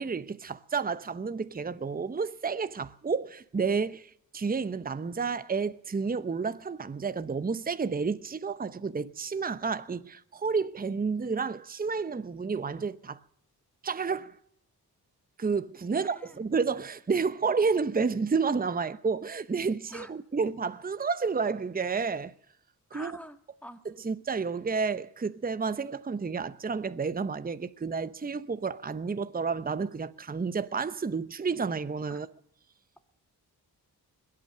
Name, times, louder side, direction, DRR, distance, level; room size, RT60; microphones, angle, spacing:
voice 1, 0.0-13.2 13.8-14.4 15.4-22.3 22.9-23.2 23.8-32.3, right 5 dB, 25° right, 0.8 m, -30 dB
voice 2, 15.9-16.3 19.9-20.1 22.9-23.8 32.1-32.2, equal, 5° left, 1.8 m, -45 dB
21.5 x 8.7 x 7.4 m
cardioid pair, 55°, 38 cm